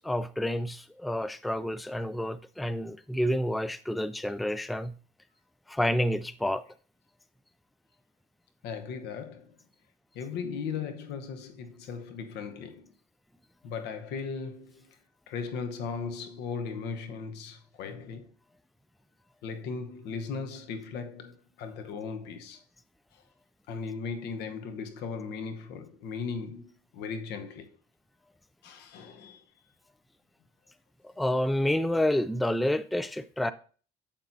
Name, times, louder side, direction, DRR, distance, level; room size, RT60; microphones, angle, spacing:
voice 1, 0.0-4.9 5.7-6.6 31.0-33.5, left 1 dB, ahead, 0.4 m, -29 dB
voice 2, 8.6-9.6 10.1-12.9 13.6-15.0 15.3-18.3 19.4-22.6 23.1-23.2 23.7-27.7 28.6-29.4 31.2-31.4, left 5 dB, 85° left, 1.1 m, -37 dB
9.0 x 7.3 x 2.7 m
cardioid pair, 110°, 17 cm